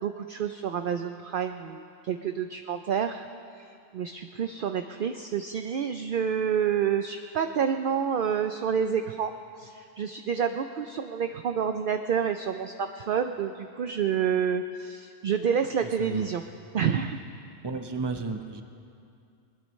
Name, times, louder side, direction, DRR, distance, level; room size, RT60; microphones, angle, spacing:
voice 1, 0.0-3.3 3.6-3.7 3.9-16.4 16.7-17.2, right 7 dB, 60° right, 7 dB, 0.6 m, -28 dB
voice 2, 17.6-18.6, right 3 dB, 25° right, 5 dB, 0.8 m, -32 dB
21.0 x 19.5 x 3.1 m, 2.5 s
omnidirectional pair, 1.2 m